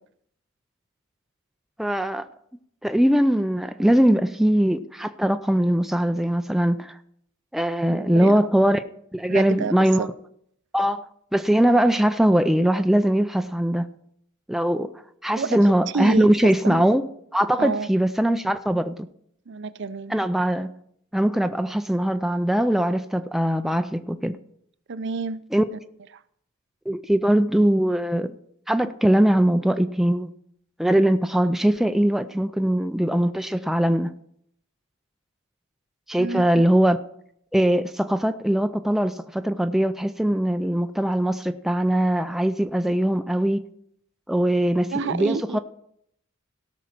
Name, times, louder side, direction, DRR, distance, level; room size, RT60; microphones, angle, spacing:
voice 1, 1.8-2.3 2.8-7.0 7.5-8.8 9.1-10.1 10.7-13.9 14.5-14.9 15.2-17.1 17.3-19.0 20.1-20.7 21.1-24.4 25.5-25.6 26.9-28.3 28.7-30.3 30.8-34.1 36.1-37.0 37.5-43.6 44.3-45.6, right 1 dB, ahead, 0.4 m, -21 dB
voice 2, 7.9-8.4 9.3-10.1 15.4-15.6 15.9-16.3 16.6-16.8 17.6-17.9 19.5-20.1 24.9-25.4 36.2-36.4 44.9-45.6, right 4 dB, 55° right, 0.5 m, -29 dB
17.0 x 6.1 x 4.4 m
head